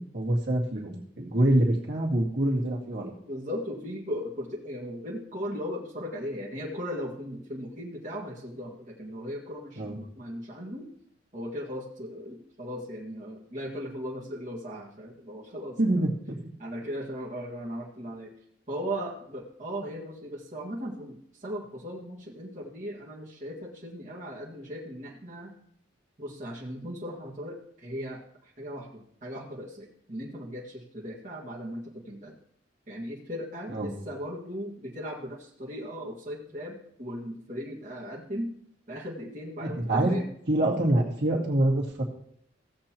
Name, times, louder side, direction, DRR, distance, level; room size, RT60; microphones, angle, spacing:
voice 1, 0.0-3.1 9.8-10.0 15.8-16.4 33.7-33.9 39.6-40.1 40.5-42.0, right 1 dB, 60° right, -2 dB, 2.2 m, -25 dB
voice 2, 3.3-10.9 11.3-16.1 16.6-18.3 18.7-25.5 26.2-28.2 28.6-32.3 32.9-38.5 38.9-40.2, equal, 40° right, -5 dB, 1.9 m, -37 dB
16.5 x 7.7 x 3.0 m, 0.69 s
head